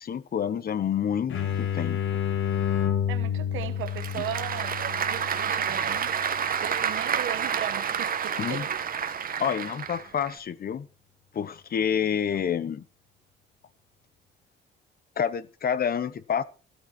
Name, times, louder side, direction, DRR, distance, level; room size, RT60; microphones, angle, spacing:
voice 1, 0.0-2.0 8.4-8.7 9.4-10.9 11.3-12.8 15.2-16.4, left 8 dB, 50° left, 1.0 m, -28 dB
sound 1, 1.3-6.8, left 9 dB, 75° left, 2.3 m, -30 dB
voice 2, 3.1-6.1 6.6-8.7 9.4-9.6, right 12 dB, 85° right, 1.3 m, -37 dB
Applause / Crowd, 3.6-10.3, right 7 dB, 45° right, 1.2 m, -29 dB
12.5 x 12.5 x 4.4 m
cardioid pair, 90°, 20 cm